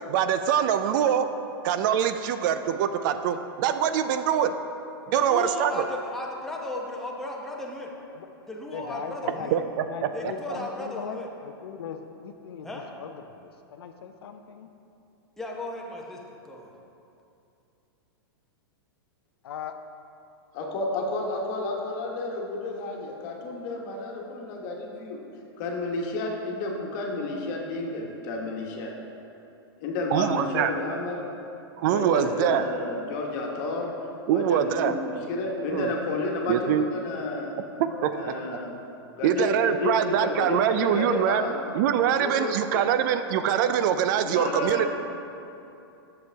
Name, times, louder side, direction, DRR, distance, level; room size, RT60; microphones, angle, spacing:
voice 1, 0.1-1.3 1.6-4.5 5.1-5.7 9.5-9.6 30.1-30.7 31.8-32.7 34.3-34.9 35.7-35.9 36.5-36.9 38.0-38.1 39.2-41.4 41.7-44.9, right 9 dB, 50° right, 9 dB, 0.4 m, -24 dB
voice 2, 5.1-7.9 8.5-9.6 10.1-11.3 12.6-12.9 15.4-16.7, left 1 dB, 5° left, -2 dB, 0.9 m, -35 dB
voice 3, 8.7-9.5 9.8-12.7 13.0-14.7 19.4-19.8 31.8-32.4 37.8-38.5, left 7 dB, 75° left, 7 dB, 0.5 m, -39 dB
voice 4, 20.5-25.2 25.6-28.9 29.8-31.2 31.9-33.9 34.3-37.6 38.1-38.8 39.1-41.6 42.2-42.8 44.2-44.9, left 2 dB, 50° left, 0 dB, 1.3 m, -31 dB
7.7 x 7.0 x 3.4 m, 2.8 s
hypercardioid pair, 120°, 13 cm